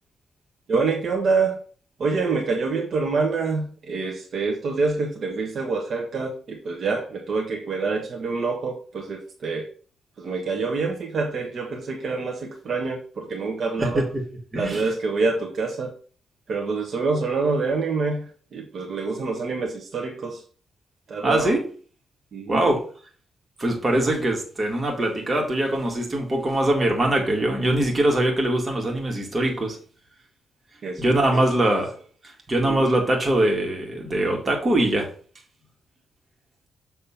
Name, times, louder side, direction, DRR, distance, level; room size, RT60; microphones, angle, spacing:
voice 1, 0.7-1.6 2.0-9.7 10.2-14.0 14.5-16.0 16.5-20.4 21.1-21.5 22.3-22.6 30.8-31.0 31.3-31.4 32.7-32.9, right 4 dB, 55° right, 1.2 m, -26 dB
voice 2, 14.5-14.9 21.2-21.7 22.5-22.8 23.6-29.8 31.0-31.9 32.2-35.1, right 1 dB, 25° right, 1.9 m, -22 dB
7.0 x 3.2 x 5.8 m
cardioid pair, 125°, 0 cm